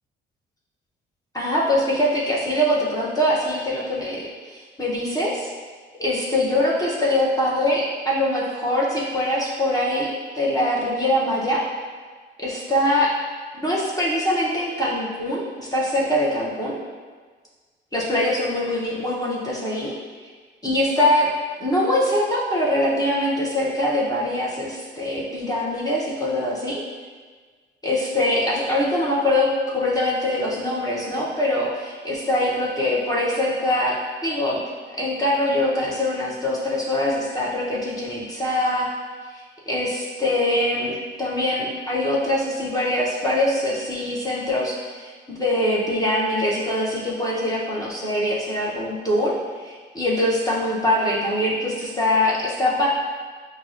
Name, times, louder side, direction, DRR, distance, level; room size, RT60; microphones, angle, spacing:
voice 1, 1.3-5.5 6.0-11.6 12.4-13.1 13.5-16.8 17.9-19.9 20.6-21.3 21.6-26.8 27.8-34.6 34.9-38.9 39.3-52.9, left 1 dB, 20° left, -5 dB, 0.7 m, -23 dB
5.7 x 2.1 x 2.4 m, 1.5 s
cardioid pair, 90°, 20 cm